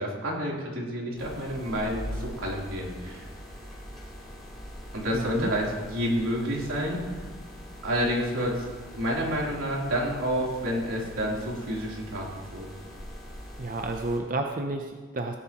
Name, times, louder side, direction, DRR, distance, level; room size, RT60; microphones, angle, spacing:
voice 1, 0.0-3.2 4.9-7.2 7.8-8.7 8.9-12.7, equal, 90° right, -4 dB, 3.4 m, -29 dB
sound 1, 1.2-14.2, equal, ahead, 3.2 m, -42 dB
voice 2, 5.1-5.5 13.6-15.4, right 2 dB, 40° right, 4 dB, 0.6 m, -31 dB
17.5 x 10.5 x 3.0 m, 1.4 s
head